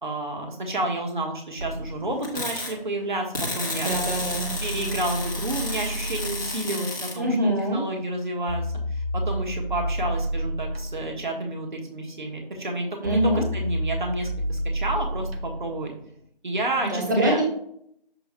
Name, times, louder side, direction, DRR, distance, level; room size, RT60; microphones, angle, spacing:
voice 1, 0.0-3.9 4.6-7.4 7.7-15.9 16.4-17.4, right 1 dB, 55° right, 1 dB, 1.4 m, -30 dB
sound 1, 1.6-6.8 8.5-15.9, equal, 85° right, 0.8 m, -31 dB
sound 2, 2.2-2.7 3.3-7.2, left 2 dB, 20° left, 0.9 m, -32 dB
voice 2, 3.8-4.5 7.1-7.8 13.0-13.4 16.8-17.4, equal, 20° right, -1 dB, 0.9 m, -24 dB
7.0 x 6.5 x 2.2 m, 0.68 s
figure-of-eight pair, 160°, 29 cm